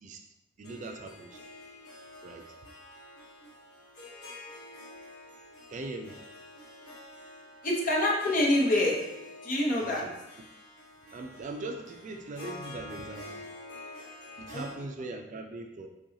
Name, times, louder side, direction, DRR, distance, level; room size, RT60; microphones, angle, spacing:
Harp, 0.6-14.7, left 2 dB, 70° left, 1.0 m, -48 dB
voice 1, 0.6-1.4 2.2-2.5 5.7-6.2 9.8-10.2 11.1-13.5 14.4-15.9, right 2 dB, 40° right, 4 dB, 0.3 m, -40 dB
voice 2, 7.6-9.0 9.4-10.0 14.5-14.6, left 1 dB, 45° left, -3 dB, 0.8 m, -26 dB
5.6 x 2.3 x 2.8 m, 0.93 s
head